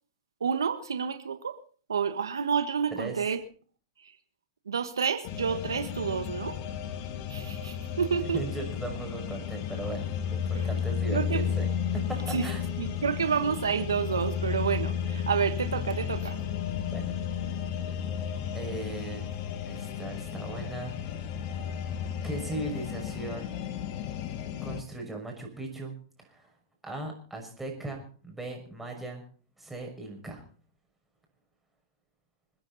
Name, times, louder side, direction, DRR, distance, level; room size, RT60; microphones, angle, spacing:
voice 1, 0.4-1.6 1.9-3.4 4.7-6.6 7.3-8.4 10.5-10.7 11.1-11.4 12.3-12.5 12.8-16.4, right 6 dB, 90° right, 1.5 m, -29 dB
voice 2, 2.9-3.2 8.3-12.6 16.7-17.1 18.5-19.3 19.7-21.0 21.4-21.6 22.2-23.5 24.6-26.5 26.8-29.2 29.6-30.4, right 2 dB, 5° right, 6.0 m, -38 dB
sound 1, 5.2-24.8, left 8 dB, 50° left, 2.1 m, -33 dB
26.5 x 10.0 x 4.2 m
hypercardioid pair, 120°, 2 cm